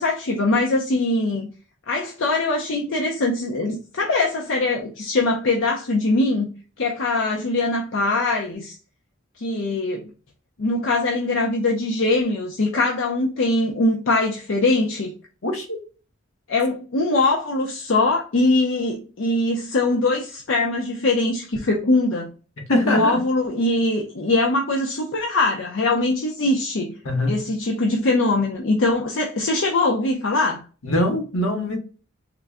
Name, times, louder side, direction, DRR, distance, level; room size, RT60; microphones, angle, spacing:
voice 1, 0.0-1.5 1.9-6.5 6.8-8.7 9.4-10.1 10.6-15.1 16.5-22.3 22.8-27.0 27.3-30.6, left 2 dB, 65° left, 0.6 m, -22 dB
voice 2, 15.4-15.8 22.7-23.2 27.0-27.4 30.8-31.8, left 1 dB, 80° left, 1.0 m, -22 dB
3.7 x 2.2 x 3.4 m
head